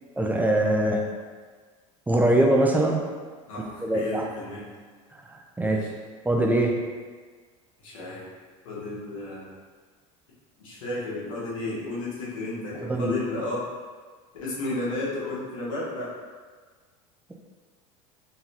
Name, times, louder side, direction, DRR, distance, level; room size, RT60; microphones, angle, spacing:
voice 1, 0.2-1.1 2.1-3.1 3.8-4.2 5.3-5.8 6.2-6.8 12.8-13.1, right 1 dB, 10° right, 0 dB, 0.5 m, -22 dB
voice 2, 3.5-4.7 5.6-5.9 7.8-8.3 8.6-9.5 10.6-13.6 14.4-16.1, left 2 dB, 85° left, -6 dB, 1.4 m, -32 dB
4.1 x 3.7 x 2.8 m, 1.5 s
hypercardioid pair, 90°, 17 cm